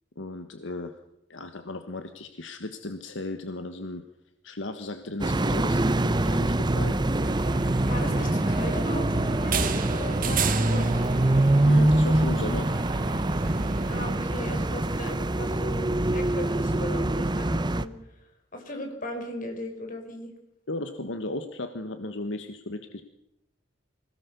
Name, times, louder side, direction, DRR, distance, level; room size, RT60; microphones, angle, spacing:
voice 1, 0.2-0.9 1.3-4.0 4.4-7.0 11.6-12.7 20.7-23.0, left 2 dB, 75° left, 8 dB, 1.4 m, -35 dB
sound 1, 5.2-17.9, right 1 dB, 25° right, 0.8 m, -24 dB
sound 2, 7.2-14.7, right 4 dB, 45° right, 1.7 m, -33 dB
voice 2, 7.9-11.2 13.9-18.0 18.5-20.3, left 1 dB, 45° left, 4 dB, 5.1 m, -37 dB
25.0 x 17.5 x 6.9 m, 0.82 s
head